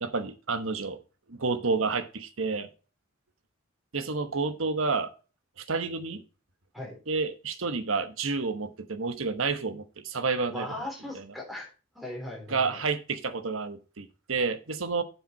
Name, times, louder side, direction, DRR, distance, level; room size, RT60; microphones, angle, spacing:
voice 1, 0.0-1.0 1.3-2.7 3.9-5.1 5.6-6.2 7.1-10.8 11.1-11.2 12.5-15.0, right 4 dB, 80° right, 9 dB, 1.1 m, -30 dB
voice 2, 10.5-11.7 12.0-12.8, left 1 dB, ahead, -1 dB, 3.4 m, -38 dB
7.6 x 6.7 x 4.3 m, 0.33 s
head